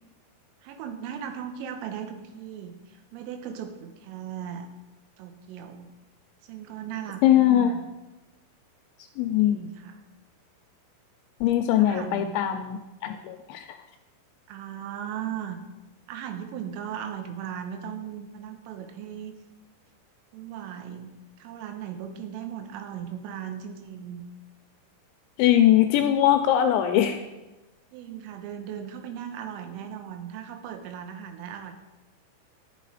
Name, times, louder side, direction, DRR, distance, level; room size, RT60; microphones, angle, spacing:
voice 1, 0.6-4.7 5.2-5.9 6.4-7.8 9.4-10.0 11.7-12.3 14.5-15.6 16.1-19.4 20.3-21.1 21.4-24.2 27.9-31.7, right 9 dB, 90° right, 6 dB, 3.6 m, -37 dB
voice 2, 7.2-7.7 9.2-9.6 11.4-13.7 25.4-27.2, left 11 dB, 85° left, 6 dB, 2.7 m, -21 dB
11.5 x 7.6 x 4.9 m, 1.1 s
omnidirectional pair, 5.7 m